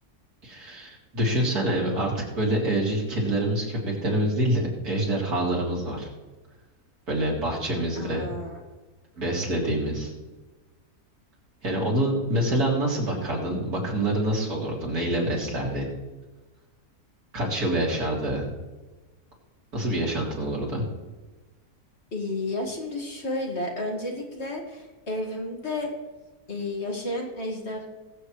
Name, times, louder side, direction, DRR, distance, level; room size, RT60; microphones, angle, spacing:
voice 1, 0.4-6.1 7.1-8.3 9.2-10.1 11.6-15.9 17.3-18.5 19.7-20.8, right 1 dB, 90° right, -3 dB, 3.6 m, -26 dB
voice 2, 8.0-8.6 22.1-25.9 26.5-27.9, left 2 dB, 45° left, 0 dB, 2.3 m, -32 dB
21.5 x 7.9 x 3.2 m, 1.2 s
omnidirectional pair, 1.6 m